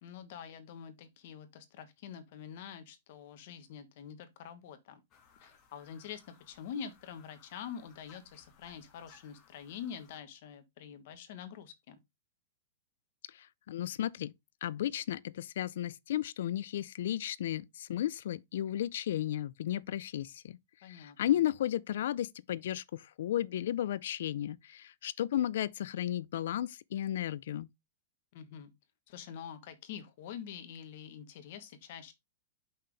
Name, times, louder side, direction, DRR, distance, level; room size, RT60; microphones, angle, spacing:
voice 1, 0.0-5.0 5.4-12.0 20.8-21.4 28.3-28.7 29.1-32.1, left 8 dB, 50° left, 1.2 m, -46 dB
sound 1, 5.1-10.2, left 5 dB, 25° left, 1.8 m, -62 dB
voice 2, 13.3-14.3 14.6-20.6 20.9-27.7, left 11 dB, 65° left, 0.4 m, -34 dB
5.8 x 5.6 x 3.3 m
supercardioid pair, 170°, 0 cm